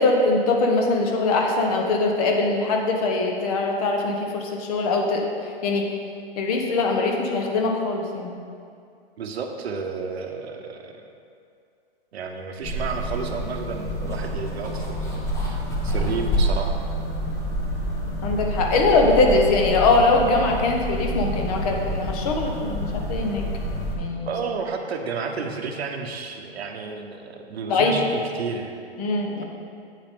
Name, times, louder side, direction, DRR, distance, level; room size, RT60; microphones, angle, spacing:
voice 1, 0.0-5.9 6.4-8.3 18.2-23.4 24.0-24.3 27.7-28.0 29.0-29.4, left 3 dB, 35° left, 2 dB, 1.0 m, -22 dB
voice 2, 9.2-11.1 12.1-16.7 24.3-28.0 28.3-28.8, right 5 dB, 80° right, 4 dB, 1.1 m, -32 dB
sound 1, 12.6-23.9, equal, 10° left, 0.8 m, -27 dB
8.2 x 7.8 x 3.7 m, 2.4 s
hypercardioid pair, 150°, 32 cm